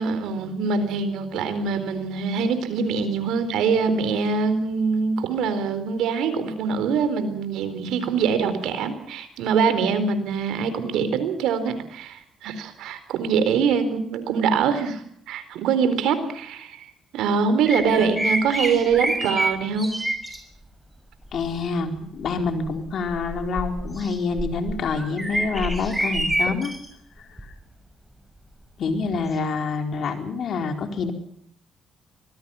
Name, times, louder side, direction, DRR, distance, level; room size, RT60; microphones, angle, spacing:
voice 1, 0.0-16.9 17.1-19.9, right 5 dB, 85° right, 11 dB, 4.0 m, -24 dB
sound 1, 17.6-20.4 21.2-21.6 22.2-26.9 27.4-27.5 29.3-29.4, right 1 dB, 5° right, 6.1 m, -28 dB
voice 2, 21.3-26.7 27.2-27.5 28.8-31.1, left 4 dB, 65° left, 5 dB, 4.3 m, -27 dB
25.0 x 20.0 x 5.7 m, 0.67 s
cardioid pair, 90°, 0 cm